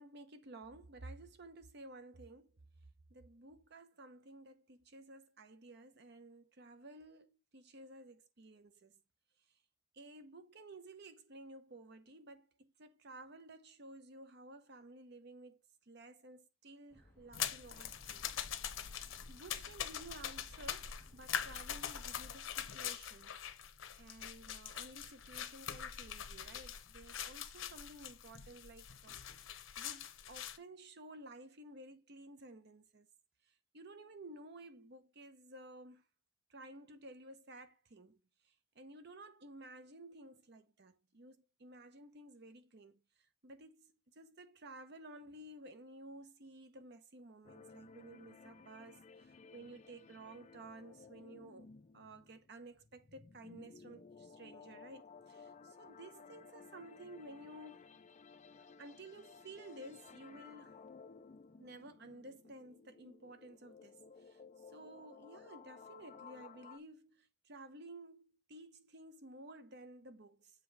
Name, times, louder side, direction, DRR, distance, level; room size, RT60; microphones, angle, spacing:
voice 1, 0.0-2.5 3.1-8.9 9.9-15.6 15.9-18.3 19.3-23.3 24.0-29.2 29.8-33.1 33.7-36.0 36.5-38.2 38.8-43.0 43.4-57.9 58.8-60.8 61.6-64.4 64.7-70.5, right 2 dB, 60° right, 0.9 m, -54 dB
sound 1, 16.9-22.3, equal, 10° left, 1.4 m, -63 dB
sound 2, 17.3-30.6, left 9 dB, 90° left, 0.8 m, -43 dB
sound 3, 47.4-66.8, left 5 dB, 35° left, 0.5 m, -57 dB
7.5 x 3.0 x 4.7 m
head